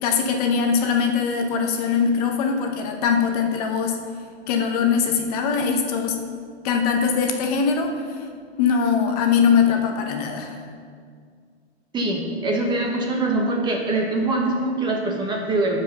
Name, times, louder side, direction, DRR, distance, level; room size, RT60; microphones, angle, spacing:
voice 1, 0.0-4.0 4.5-6.2 6.6-8.3 8.6-10.6, left 6 dB, 35° left, 3 dB, 0.9 m, -21 dB
voice 2, 11.9-15.8, right 2 dB, 15° right, 0 dB, 1.1 m, -23 dB
12.5 x 5.0 x 6.5 m, 2.1 s
hypercardioid pair, 145°, 34 cm